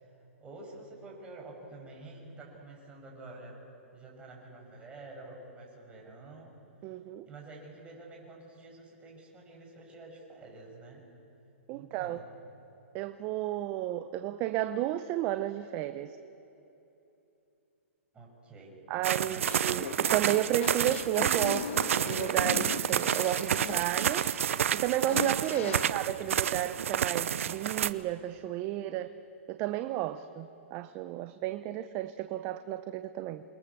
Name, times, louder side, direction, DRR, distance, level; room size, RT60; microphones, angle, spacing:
voice 1, 0.4-3.6 3.9-6.5 7.3-11.0 11.7-12.3 18.1-19.5, right 2 dB, 15° right, -2 dB, 6.4 m, -48 dB
voice 2, 6.8-7.3 11.7-12.2 12.9-16.2 18.9-24.3 24.7-29.1 29.5-33.4, right 13 dB, 30° right, 10 dB, 0.8 m, -32 dB
sound 1, 19.0-27.9, right 9 dB, 70° right, 0.8 m, -29 dB
sound 2, 19.4-25.9, left 6 dB, 65° left, 1.7 m, -39 dB
28.0 x 22.0 x 7.1 m, 2.8 s
hypercardioid pair, 140°, 8 cm